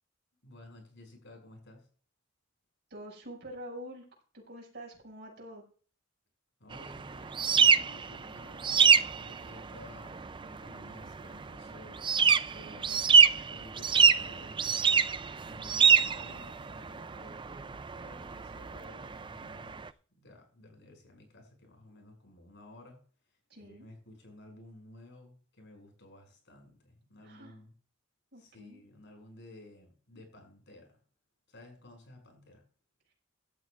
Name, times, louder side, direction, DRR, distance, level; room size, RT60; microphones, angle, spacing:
voice 1, 0.4-1.9 6.6-14.8 15.1-23.0 23.6-27.7 28.3-31.0 31.5-32.6, left 1 dB, 65° left, 4 dB, 6.2 m, -54 dB
voice 2, 2.9-4.1 4.3-5.6 23.5-23.9 27.2-27.6 28.3-28.8, equal, 60° right, -3 dB, 6.0 m, -46 dB
sound 1, 6.7-19.9, right 6 dB, 25° right, 0.4 m, -26 dB
16.5 x 12.0 x 2.5 m, 0.42 s
head